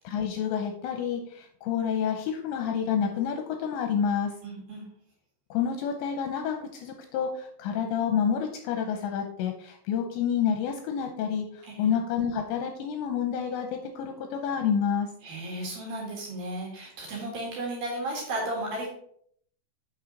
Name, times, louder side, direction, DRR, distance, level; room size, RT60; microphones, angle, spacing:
voice 1, 0.0-4.3 5.5-15.1, left 7 dB, 80° left, 4 dB, 2.8 m, -29 dB
voice 2, 4.4-4.9 11.7-11.9 15.2-18.9, right 1 dB, 55° right, -2 dB, 3.1 m, -34 dB
9.0 x 6.4 x 3.9 m, 0.65 s
omnidirectional pair, 5.8 m